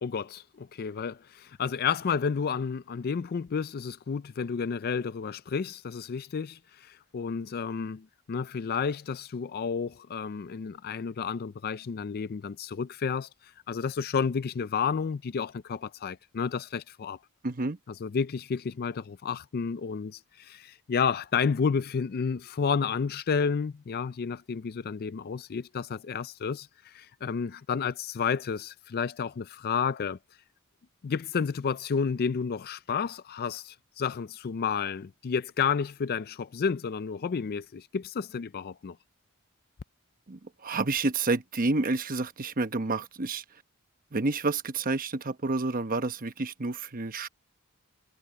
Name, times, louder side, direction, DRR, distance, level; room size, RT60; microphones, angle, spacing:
voice 1, 0.0-17.2 18.0-30.2 31.0-39.0, left 6 dB, 45° left, 0.4 m, -31 dB
voice 2, 17.4-17.8 40.3-43.4 44.1-47.3, right 3 dB, 40° right, 1.0 m, -29 dB
head